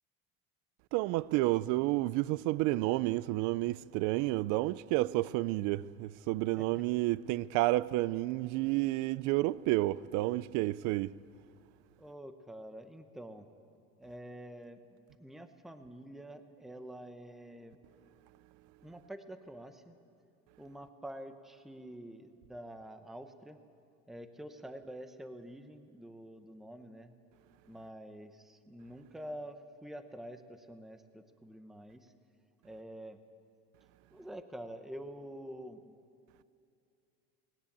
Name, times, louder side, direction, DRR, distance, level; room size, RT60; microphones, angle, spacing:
voice 1, 0.9-11.1, right 18 dB, 70° right, 0.5 m, -30 dB
voice 2, 12.0-13.5 14.0-17.8 18.8-19.9 20.6-23.6 24.1-27.1 27.7-32.1 32.6-33.2 34.1-36.0, right 1 dB, ahead, 0.8 m, -47 dB
20.0 x 17.5 x 8.6 m
cardioid pair, 150°, 31 cm